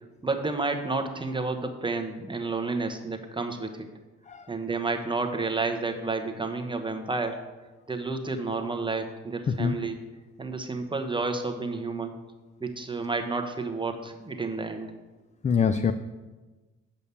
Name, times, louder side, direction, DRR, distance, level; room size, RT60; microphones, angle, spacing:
voice 1, 0.2-3.8 4.5-7.4 7.9-10.0 10.4-12.1 12.6-14.9, right 3 dB, 15° right, 4 dB, 1.1 m, -30 dB
voice 2, 15.4-15.9, left 6 dB, 25° left, 11 dB, 0.4 m, -24 dB
8.3 x 5.3 x 7.0 m, 1.2 s
cardioid pair, 90°, 30 cm